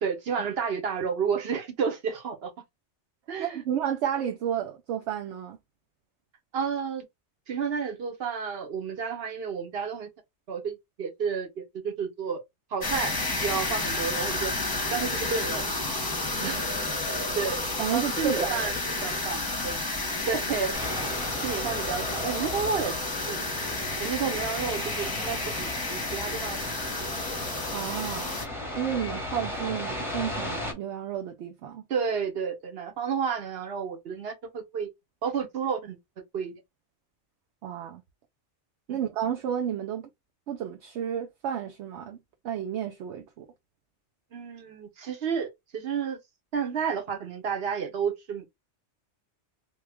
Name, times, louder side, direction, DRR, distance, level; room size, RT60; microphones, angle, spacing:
voice 1, 0.0-2.5 3.3-3.6 6.5-7.0 7.5-10.1 10.5-12.4 12.7-14.5 14.9-15.6 16.4-16.6 17.4-17.6 17.9-18.7 19.0-19.8 20.3-20.8 21.4-23.5 24.0-26.8 31.9-34.9 35.2-36.0 36.3-36.5 38.9-39.0 44.3-46.2 46.5-48.5, right 6 dB, 60° right, 1.2 m, -31 dB
voice 2, 3.4-5.6 16.4-17.0 17.8-18.7 27.7-28.3 28.8-31.8 37.6-38.0 38.9-40.1 40.5-42.2 42.4-43.4, right 9 dB, 75° right, 0.9 m, -32 dB
sound 1, 12.8-28.5, left 2 dB, 20° left, 0.8 m, -31 dB
sound 2, 20.7-30.7, left 1 dB, ahead, 1.0 m, -36 dB
3.0 x 2.4 x 3.3 m
omnidirectional pair, 1.2 m